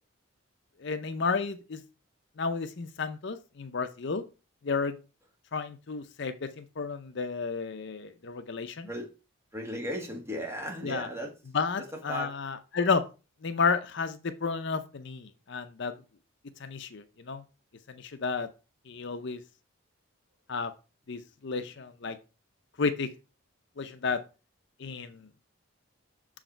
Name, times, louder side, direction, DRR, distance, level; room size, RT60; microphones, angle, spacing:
voice 1, 0.8-1.8 2.4-4.2 4.6-5.0 5.5-8.9 10.8-11.1 11.5-13.0 13.4-15.9 16.6-17.4 17.9-18.5 18.9-19.4 20.5-20.7 21.1-22.2 22.8-23.1 23.8-24.2 24.8-25.2, left 4 dB, 55° left, 0.6 m, -32 dB
voice 2, 9.5-11.3 12.1-12.3, equal, 10° right, 1.7 m, -35 dB
6.5 x 4.8 x 4.4 m
head